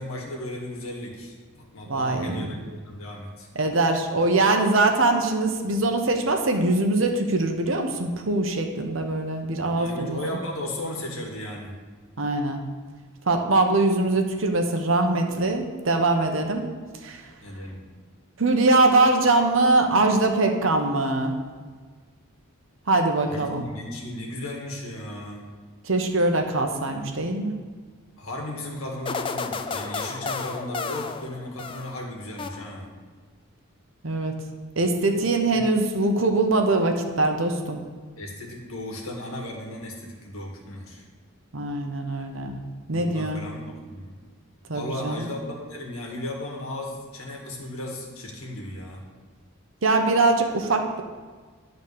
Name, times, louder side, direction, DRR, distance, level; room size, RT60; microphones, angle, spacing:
voice 1, 0.0-3.5 9.7-11.8 17.4-17.9 23.2-25.4 28.2-32.9 35.5-35.7 38.2-41.1 42.9-44.2 44.7-49.0, left 1 dB, 85° left, 0 dB, 1.8 m, -35 dB
voice 2, 1.9-2.6 3.5-10.2 12.2-12.6 13.3-16.6 17.0-17.2 18.4-21.3 22.9-23.6 25.8-27.5 34.0-34.4 34.8-37.8 41.5-42.6 42.9-43.5 44.7-45.3 49.8-51.0, right 2 dB, 70° right, 4 dB, 1.0 m, -22 dB
sound 1, 29.1-32.0 32.4-33.0, left 4 dB, 25° left, 0.4 m, -32 dB
10.5 x 4.0 x 6.7 m, 1.5 s
head